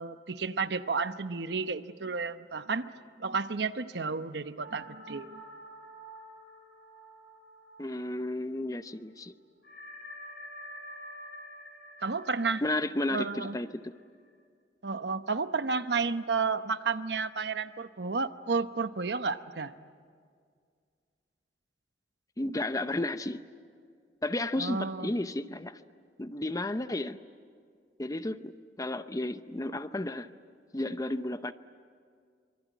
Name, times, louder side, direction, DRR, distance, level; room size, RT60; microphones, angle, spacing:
voice 1, 0.0-2.9 3.2-5.4 12.0-12.6 13.1-13.6 14.8-19.7 24.6-25.1, right 4 dB, 65° right, 11 dB, 0.9 m, -32 dB
sound 1, 4.6-8.6 8.9-9.0 9.6-14.3, equal, 60° left, 3.1 m, -48 dB
voice 2, 7.8-9.3 12.6-13.9 22.4-23.4 24.2-25.8 26.2-27.2 28.0-30.3 30.7-31.5, left 1 dB, 20° left, 11 dB, 0.7 m, -33 dB
25.5 x 23.5 x 9.3 m, 2.1 s
head